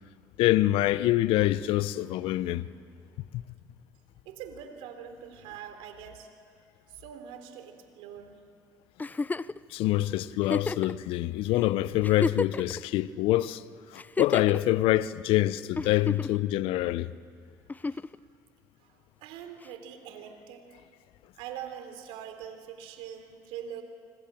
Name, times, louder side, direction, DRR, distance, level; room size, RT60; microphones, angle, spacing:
voice 1, 0.4-2.7 3.3-3.4 9.7-13.6 13.9-17.1, left 15 dB, 70° left, 0.8 m, -25 dB
voice 2, 4.2-6.3 6.9-8.4 17.9-18.0 18.8-20.8 21.3-23.8, right 9 dB, 75° right, 3.3 m, -43 dB
Giggle, 9.0-9.6 10.4-10.9 11.6-11.7 12.0-12.8 14.0-14.6 15.8-16.4 17.7-18.2 19.6-19.7, left 3 dB, 15° left, 0.6 m, -31 dB
26.5 x 25.5 x 7.5 m
hypercardioid pair, 65°, 10 cm